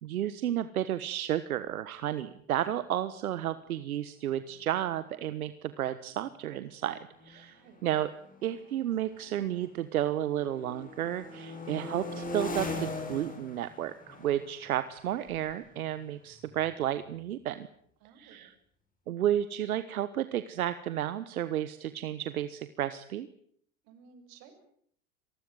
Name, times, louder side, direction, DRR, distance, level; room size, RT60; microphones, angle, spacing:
voice 1, 0.0-7.0 7.2-8.1 8.4-17.7 18.2-18.5 19.1-23.3, right 11 dB, 85° right, 13 dB, 1.4 m, -32 dB
sound 1, 4.5-4.6 4.8-5.2 5.9-9.9 10.2-16.9, left 2 dB, 20° left, 7.0 m, -42 dB
voice 2, 7.5-7.8 18.0-18.5 23.8-24.5, right 6 dB, 55° right, 7 dB, 7.4 m, -56 dB
26.0 x 20.0 x 8.0 m, 0.65 s
hypercardioid pair, 95°, 42 cm